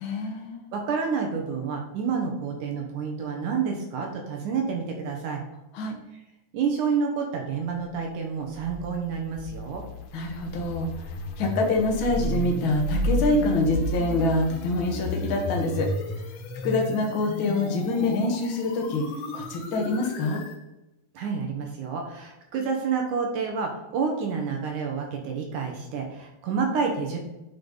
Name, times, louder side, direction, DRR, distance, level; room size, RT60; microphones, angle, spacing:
voice 1, 0.0-0.6 5.7-6.0 10.1-15.9 16.6-19.0 19.3-20.4, left 2 dB, 65° left, 1 dB, 1.2 m, -26 dB
voice 2, 0.7-5.4 6.5-9.8 21.1-27.2, right 5 dB, 65° right, 2 dB, 2.3 m, -29 dB
sound 1, 8.5-20.6, equal, 90° left, 3.0 m, -32 dB
9.2 x 5.5 x 3.9 m, 0.93 s
omnidirectional pair, 4.4 m